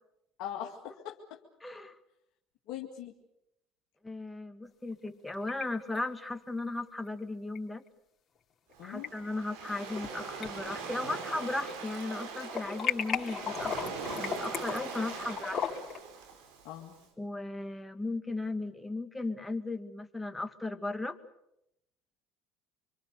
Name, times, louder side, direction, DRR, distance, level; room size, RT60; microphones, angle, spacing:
voice 1, 0.4-1.2 2.7-3.1 8.8-9.1 16.6-17.0, left 10 dB, 65° left, 0 dB, 2.2 m, -40 dB
voice 2, 1.6-2.0 4.0-7.8 8.8-15.6 17.2-21.2, left 2 dB, 10° left, 9 dB, 2.1 m, -36 dB
sound 1, 4.9-5.6 5.9-6.0 7.6-7.7 8.7-9.1 9.6-10.1 10.4-11.8 12.1-16.0, left 7 dB, 35° left, 4.0 m, -36 dB
Waves surf, 8.7-17.0, right 5 dB, 75° right, 4.5 m, -42 dB
26.0 x 24.5 x 6.9 m, 0.81 s
hypercardioid pair, 75°, 0 cm